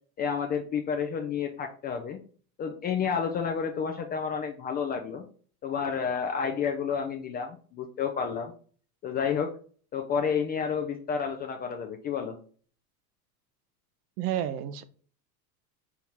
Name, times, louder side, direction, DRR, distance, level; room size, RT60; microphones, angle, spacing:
voice 1, 0.2-2.2 2.6-5.2 5.6-8.5 9.0-9.5 9.9-12.4, left 6 dB, 25° left, 0.3 m, -30 dB
voice 2, 14.2-14.8, right 11 dB, 45° right, 0.5 m, -30 dB
4.6 x 2.7 x 3.6 m
hypercardioid pair, 100°, 47 cm